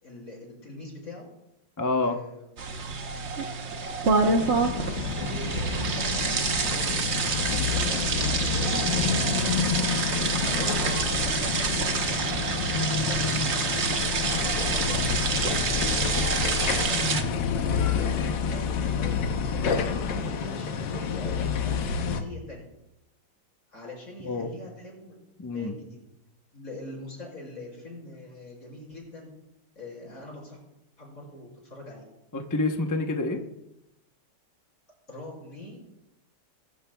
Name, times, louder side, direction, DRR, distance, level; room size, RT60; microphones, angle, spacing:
voice 1, 0.0-1.3 2.0-2.7 4.2-4.4 5.2-9.7 10.4-13.7 14.1-15.0 15.5-22.6 23.7-25.1 25.5-26.0 26.5-29.3 29.8-30.6 31.0-32.0 35.1-35.9, left 1 dB, 50° left, -3 dB, 5.7 m, -43 dB
voice 2, 1.8-2.2 24.2-24.5 25.4-25.7 32.3-33.4, left 2 dB, 30° left, 4 dB, 0.3 m, -27 dB
sound 1, 2.6-17.2, right 4 dB, 45° right, 1.1 m, -27 dB
sound 2, 4.4-22.2, left 6 dB, 80° left, 1.6 m, -28 dB
22.5 x 11.5 x 2.3 m, 0.88 s
omnidirectional pair, 1.9 m